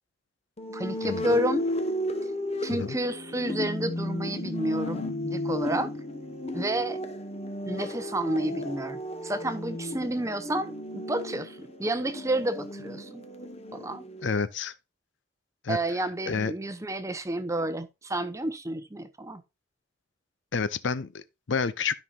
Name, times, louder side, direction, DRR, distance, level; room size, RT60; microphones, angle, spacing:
sound 1, 0.6-14.3, left 1 dB, 30° left, 1.1 m, -34 dB
voice 1, 0.7-1.6 2.6-5.9 6.5-7.0 7.7-13.2 13.7-14.0 15.7-19.4, right 1 dB, 15° right, 0.7 m, -30 dB
voice 2, 14.2-14.7 15.6-15.8 16.3-16.5 20.5-21.9, left 5 dB, 70° left, 0.6 m, -29 dB
13.0 x 5.5 x 2.4 m
head